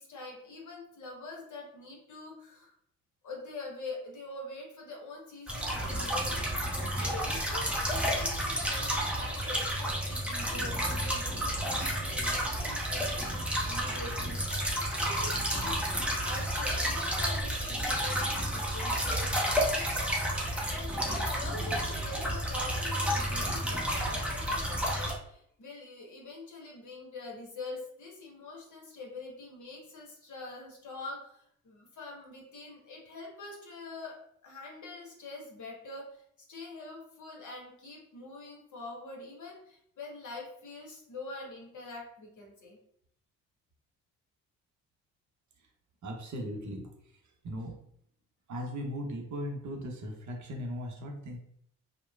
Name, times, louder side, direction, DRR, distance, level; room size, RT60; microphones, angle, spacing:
voice 1, 0.0-2.7 3.2-6.6 6.9-19.3 20.6-36.2 36.5-42.8, left 2 dB, 45° left, -1 dB, 1.1 m, -44 dB
sound 1, 5.5-25.1, equal, 5° right, 0.7 m, -31 dB
voice 2, 46.0-46.9 47.4-47.8 48.5-51.4, equal, 45° right, 1 dB, 0.7 m, -38 dB
2.8 x 2.2 x 2.2 m, 0.68 s
hypercardioid pair, 45°, 43 cm